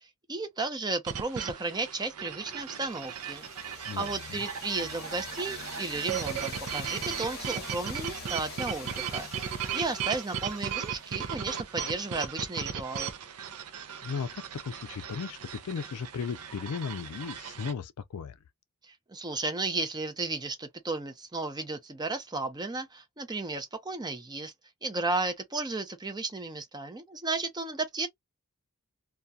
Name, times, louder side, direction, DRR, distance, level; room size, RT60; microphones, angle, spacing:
voice 1, 0.3-3.5 3.9-9.3 9.7-13.1 18.8-24.5 24.8-28.1, right 3 dB, 20° right, 0.6 m, -34 dB
sound 1, 1.1-17.7, right 8 dB, 75° right, 0.6 m, -37 dB
sound 2, 2.8-11.5, left 6 dB, 45° left, 0.7 m, -45 dB
voice 2, 3.8-4.4 14.0-15.4 15.6-18.4, left 6 dB, 75° left, 0.4 m, -36 dB
2.3 x 2.3 x 2.6 m
head